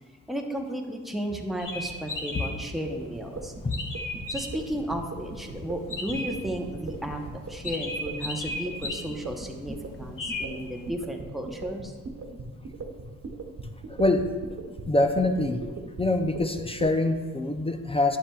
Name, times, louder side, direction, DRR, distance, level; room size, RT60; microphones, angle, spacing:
voice 1, 0.3-3.5 4.3-11.9, right 1 dB, ahead, 1 dB, 0.8 m, -34 dB
sound 1, 1.6-10.9, left 2 dB, 75° left, 1.1 m, -38 dB
sound 2, 3.2-16.9, right 3 dB, 50° right, 1.1 m, -38 dB
voice 2, 13.9-14.2 14.9-15.6 16.0-18.2, left 2 dB, 20° left, 7 dB, 0.4 m, -24 dB
10.0 x 7.2 x 2.3 m, 1.4 s
cardioid pair, 105°, 33 cm